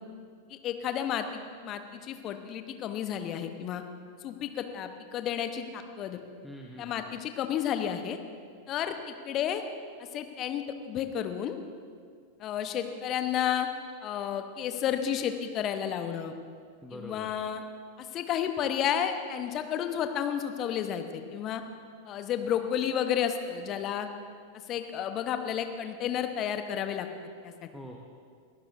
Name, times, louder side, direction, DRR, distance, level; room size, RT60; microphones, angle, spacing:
voice 1, 0.5-3.8 4.2-6.2 6.8-8.2 8.7-9.6 10.1-11.6 12.4-13.7 14.0-16.3 16.9-17.6 18.0-21.6 22.1-24.1 24.7-27.1 27.4-27.7, left 9 dB, 35° left, 7 dB, 1.1 m, -31 dB
voice 2, 6.4-7.2 16.8-17.3 27.7-28.0, equal, 5° left, 0 dB, 1.1 m, -44 dB
21.5 x 15.5 x 2.7 m, 2.1 s
figure-of-eight pair, 90°, 0 cm